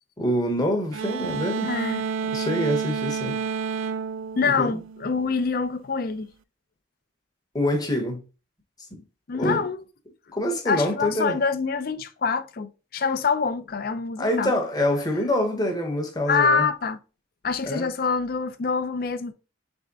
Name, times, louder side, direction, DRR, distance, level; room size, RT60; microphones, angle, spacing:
voice 1, 0.2-1.7 2.3-3.4 4.6-4.7 7.5-8.2 8.9-9.0 9.3-9.6 10.3-11.4 14.2-16.7 17.6-17.9, left 1 dB, 20° left, 0.8 m, -25 dB
sound 1, 0.9-5.4, right 6 dB, 85° right, 0.3 m, -30 dB
voice 2, 1.6-2.1 4.4-6.3 9.3-9.8 10.7-14.5 16.3-17.0 17.4-19.3, left 5 dB, 50° left, 0.4 m, -25 dB
3.5 x 3.3 x 3.9 m
head